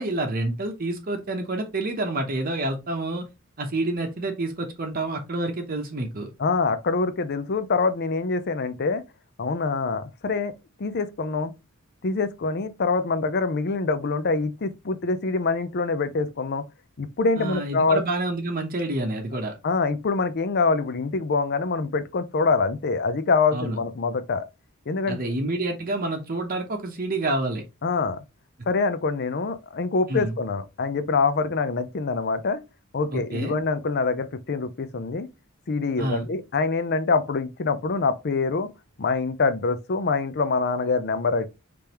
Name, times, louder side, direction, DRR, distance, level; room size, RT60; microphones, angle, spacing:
voice 1, 0.0-3.2 3.6-6.3 17.4-19.5 23.5-23.8 25.1-27.6 30.1-30.3 33.1-33.6 36.0-36.3, right 2 dB, 40° right, 0.8 m, -28 dB
voice 2, 6.4-9.0 9.4-10.5 10.8-11.5 12.0-16.6 17.0-18.0 19.6-24.5 24.9-25.2 27.8-28.2 28.7-32.6 32.9-35.3 35.7-38.7 39.0-41.5, left 4 dB, 50° left, 0.5 m, -25 dB
5.1 x 3.4 x 2.9 m
head